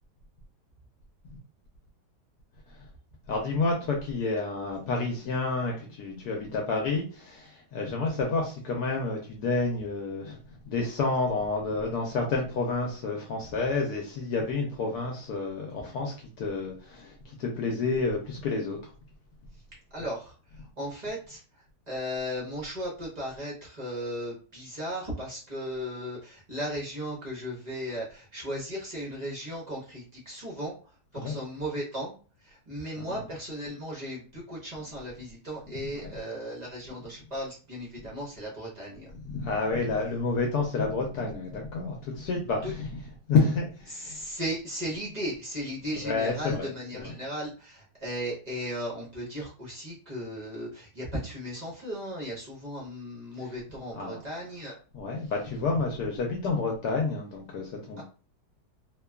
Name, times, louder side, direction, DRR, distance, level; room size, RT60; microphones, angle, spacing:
voice 1, 3.3-18.8 31.1-31.3 33.0-33.2 36.0-36.1 39.1-43.0 43.3-44.2 45.9-46.7 46.9-47.1 53.4-53.5 53.9-54.2 54.9-58.0, left 3 dB, 75° left, 0 dB, 1.1 m, -29 dB
voice 2, 19.9-30.8 31.1-32.1 32.4-39.1 42.6-42.7 43.9-54.8, equal, 40° right, -4 dB, 0.6 m, -36 dB
3.0 x 2.2 x 2.2 m, 0.37 s
omnidirectional pair, 1.9 m